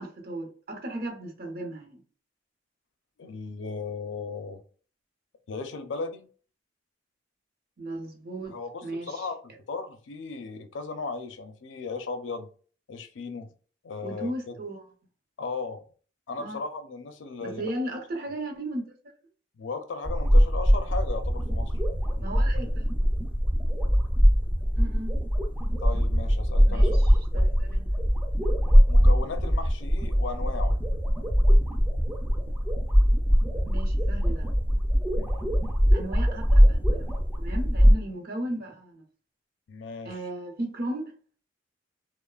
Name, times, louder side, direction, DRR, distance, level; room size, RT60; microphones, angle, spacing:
voice 1, 0.0-2.0 7.8-8.6 8.8-9.3 14.0-14.8 16.4-16.6 17.4-18.8 22.2-22.9 24.8-25.2 26.7-27.9 33.7-34.5 35.9-37.0 37.4-39.0 40.0-41.1, right 1 dB, 55° right, 0.7 m, -36 dB
voice 2, 3.2-4.6 5.5-6.3 8.5-8.7 9.0-12.5 12.9-13.5 13.8-14.5 15.4-15.8 16.3-17.7 19.5-21.8 25.8-26.9 28.9-30.8 35.2-35.4 39.7-40.2, left 4 dB, 80° left, 0.5 m, -36 dB
sound 1, 20.0-38.0, equal, 10° right, 0.3 m, -22 dB
3.0 x 2.0 x 2.2 m
head